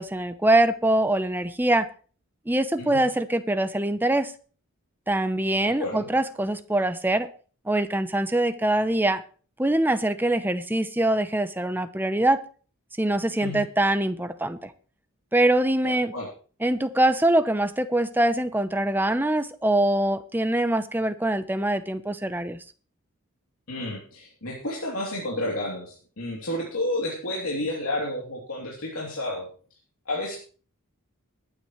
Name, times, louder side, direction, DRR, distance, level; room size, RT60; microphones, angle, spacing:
voice 1, 0.0-1.9 2.5-4.3 5.1-7.3 7.7-9.2 9.6-12.4 13.0-14.7 15.3-16.1 16.6-22.6, right 1 dB, 10° right, 11 dB, 0.7 m, -23 dB
voice 2, 15.8-16.3 23.7-29.5 30.1-30.4, left 1 dB, 75° left, -3 dB, 3.1 m, -31 dB
20.5 x 9.4 x 3.2 m, 0.40 s
head